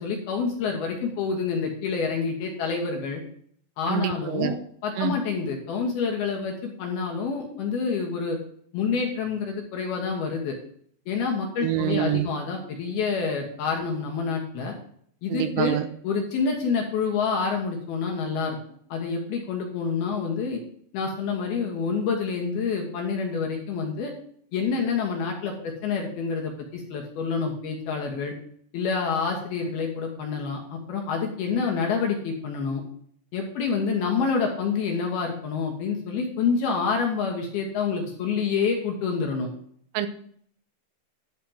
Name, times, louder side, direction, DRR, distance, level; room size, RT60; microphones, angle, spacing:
voice 1, 0.0-3.2 3.8-4.5 4.8-8.4 8.7-10.6 11.1-14.8 15.2-15.8 16.0-18.6 18.9-20.6 20.9-24.1 24.5-28.3 28.7-32.8 33.3-39.5, left 5 dB, 65° left, 0 dB, 2.8 m, -27 dB
voice 2, 3.9-4.5 5.0-5.2 11.6-12.3 15.3-15.9 39.9-40.1, right 11 dB, 85° right, 11 dB, 3.3 m, -26 dB
12.0 x 4.2 x 7.2 m, 0.62 s
omnidirectional pair, 5.7 m